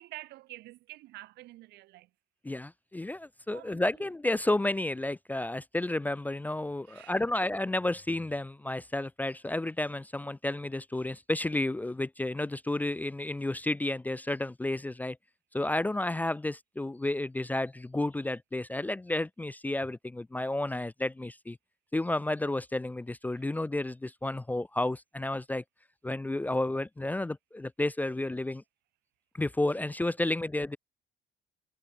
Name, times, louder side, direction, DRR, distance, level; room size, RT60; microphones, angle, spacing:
voice 1, 0.0-2.1 3.5-3.8 6.9-7.2, right 18 dB, 80° right, 1.7 m, -48 dB
voice 2, 2.4-15.2 15.5-21.6 21.9-25.6 26.0-28.6 29.4-30.8, left 2 dB, 10° left, 0.5 m, -31 dB
cardioid pair, 110°, 17 cm